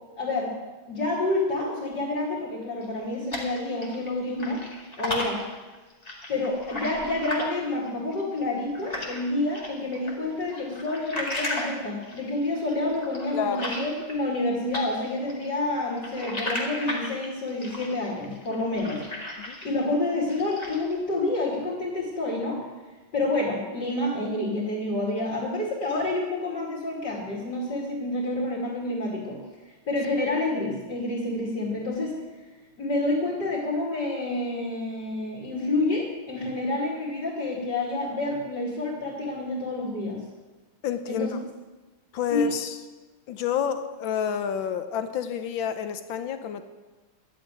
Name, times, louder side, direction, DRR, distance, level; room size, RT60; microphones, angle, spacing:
voice 1, 0.2-0.5 0.9-4.6 5.0-5.4 6.3-19.0 19.6-22.6 23.1-29.4 29.9-32.2 32.8-40.2 41.1-41.3 42.3-42.5, left 2 dB, 50° left, -4 dB, 3.2 m, -28 dB
sound 1, 2.8-4.1 4.4-9.2 9.5-14.4 14.7-19.8 20.2-20.9, left 1 dB, 20° left, 2.1 m, -35 dB
voice 2, 13.3-13.6 19.4-19.6 40.8-41.4 42.1-42.8 43.3-46.7, left 8 dB, 70° left, 9 dB, 1.5 m, -29 dB
11.5 x 8.5 x 9.3 m, 1.2 s
omnidirectional pair, 2.4 m